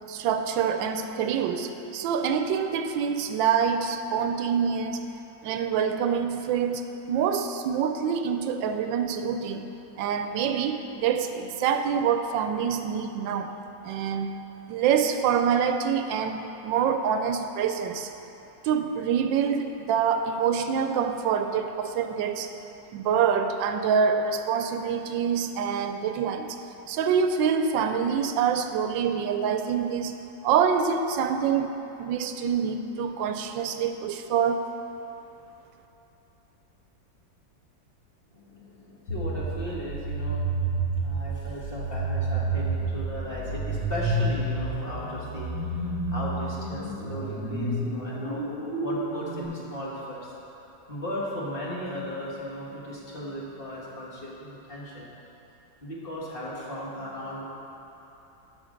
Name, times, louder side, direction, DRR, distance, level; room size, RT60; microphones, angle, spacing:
voice 1, 0.1-5.0 5.4-13.6 13.8-14.4 14.7-18.1 18.6-22.5 22.9-26.6 26.9-30.2 30.4-34.7, right 7 dB, 90° right, 7 dB, 1.3 m, -26 dB
voice 2, 38.3-40.4 41.0-45.8 46.1-50.2 50.6-55.1 55.8-57.4, equal, 30° left, -6 dB, 1.7 m, -36 dB
sound 1, 39.1-49.4, right 2 dB, 80° left, 3.1 m, -30 dB
11.5 x 6.1 x 5.1 m, 3.0 s
omnidirectional pair, 2.0 m